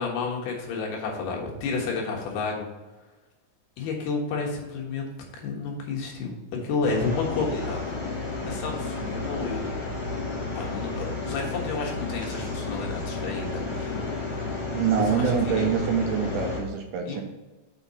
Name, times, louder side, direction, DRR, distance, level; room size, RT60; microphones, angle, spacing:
voice 1, 0.0-2.7 3.8-5.1 5.4-6.3 6.6-7.8 8.1-9.7 10.6-14.2 14.9-15.7 17.1-17.2, left 4 dB, 90° left, -1 dB, 3.5 m, -31 dB
sound 1, 6.8-16.6, left 3 dB, 15° left, 1.9 m, -32 dB
voice 2, 14.7-17.2, right 7 dB, 80° right, 3 dB, 1.9 m, -25 dB
6.1 x 5.9 x 4.1 m, 1.2 s
omnidirectional pair, 4.4 m